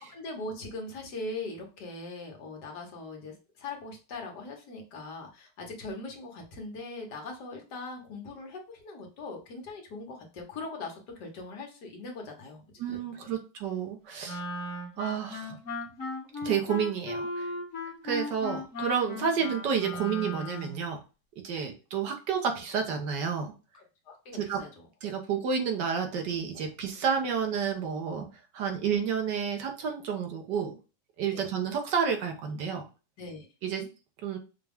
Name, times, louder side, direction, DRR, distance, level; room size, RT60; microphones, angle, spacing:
voice 1, 0.1-12.6 13.0-13.4 21.5-21.7 23.7-24.8 31.3-31.5 33.2-33.5, left 3 dB, 70° left, 1 dB, 1.8 m, -41 dB
voice 2, 12.8-14.4 15.0-15.6 16.4-17.5 18.0-21.0 21.4-23.5 24.4-24.6 25.0-28.3 28.5-30.7 31.2-32.8 33.6-33.9 34.2-34.4, right 7 dB, 85° right, 4 dB, 1.6 m, -30 dB
Wind instrument woodwind instrument, 14.2-20.9, left 2 dB, 45° left, 1.7 m, -37 dB
5.7 x 2.4 x 3.5 m, 0.32 s
omnidirectional pair, 1.8 m